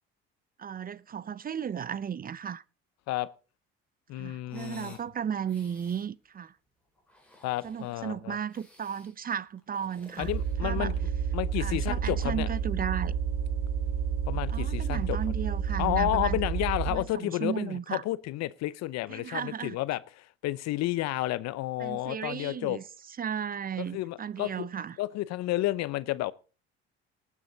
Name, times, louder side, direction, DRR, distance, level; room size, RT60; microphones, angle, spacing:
voice 1, 0.6-2.6 4.2-6.5 7.6-10.3 10.6-10.9 11.6-13.1 14.5-16.4 16.9-18.0 19.1-19.8 21.8-22.8 23.2-25.0, right 8 dB, 30° right, 0.5 m, -35 dB
voice 2, 4.1-5.0 7.4-8.4 10.2-11.0 11.3-12.5 14.3-15.2 15.8-22.8 23.9-24.7 25.0-26.3, left 16 dB, 65° left, 0.7 m, -31 dB
sound 1, 4.4-5.1 5.4-6.1 7.0-8.1 8.5-9.2 9.6-11.1, left 1 dB, 5° left, 4.5 m, -55 dB
sound 2, 10.2-17.1, right 7 dB, 50° right, 1.8 m, -30 dB
18.5 x 7.4 x 4.0 m
hypercardioid pair, 65°, 29 cm